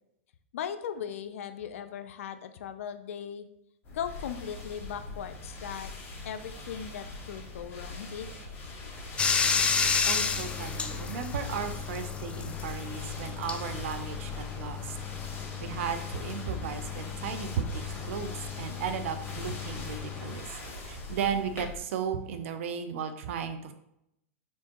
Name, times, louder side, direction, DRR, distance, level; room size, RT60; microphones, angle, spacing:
voice 1, 0.5-3.5 3.9-5.9 6.2-8.3, left 8 dB, 75° left, 11 dB, 0.4 m, -38 dB
sound 1, 3.8-21.8, left 2 dB, 30° left, 1.3 m, -42 dB
Bathtub (filling or washing), 9.2-20.3, left 5 dB, 15° left, 0.3 m, -33 dB
voice 2, 10.0-15.0 15.6-17.7 18.0-20.5 20.8-23.7, right 7 dB, 70° right, 9 dB, 0.5 m, -35 dB
4.4 x 3.6 x 3.0 m, 0.80 s
hypercardioid pair, 125°, 7 cm